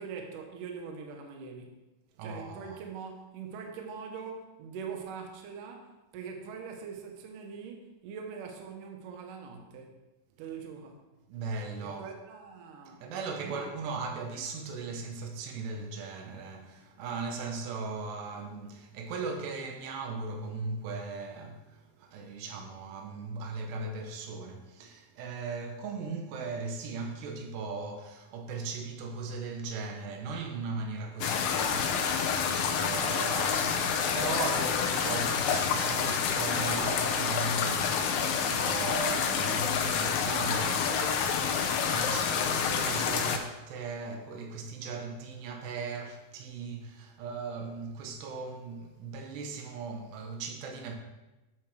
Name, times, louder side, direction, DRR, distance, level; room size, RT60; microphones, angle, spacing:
voice 1, 0.0-1.8 2.2-10.0 10.4-11.1 11.8-13.0 13.4-13.7 40.8-41.1, right 6 dB, 65° right, 2.3 m, -42 dB
voice 2, 2.2-2.8 11.3-12.1 13.0-51.0, right 4 dB, 85° right, 3.2 m, -38 dB
sound 1, 31.2-43.4, left 6 dB, 75° left, 2.3 m, -28 dB
12.0 x 7.3 x 3.3 m
omnidirectional pair, 4.7 m